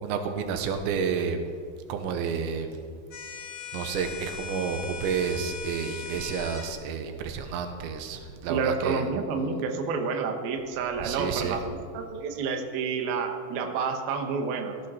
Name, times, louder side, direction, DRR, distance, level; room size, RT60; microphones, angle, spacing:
voice 1, 0.0-1.5 1.9-2.8 3.7-9.1 11.0-11.6, right 6 dB, 90° right, 6 dB, 3.4 m, -30 dB
sound 1, 3.1-6.7, left 6 dB, 75° left, 3.9 m, -39 dB
voice 2, 8.5-14.8, right 5 dB, 65° right, 4 dB, 2.9 m, -29 dB
19.0 x 14.5 x 4.4 m, 2.1 s
omnidirectional pair, 5.1 m